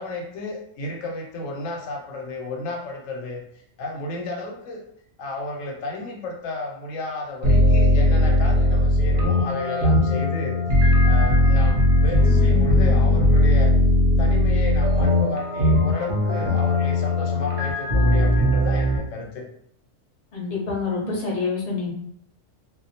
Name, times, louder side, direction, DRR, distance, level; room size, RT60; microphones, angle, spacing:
voice 1, 0.0-3.4 3.8-4.8 5.2-10.6 11.0-13.7 14.2-19.5, left 2 dB, 75° left, 1 dB, 0.9 m, -32 dB
sound 1, 7.4-19.0, left 1 dB, 50° right, 0.6 m, -18 dB
voice 2, 20.3-21.9, left 4 dB, 45° left, -3 dB, 0.7 m, -27 dB
2.3 x 2.0 x 2.7 m, 0.70 s
omnidirectional pair, 1.4 m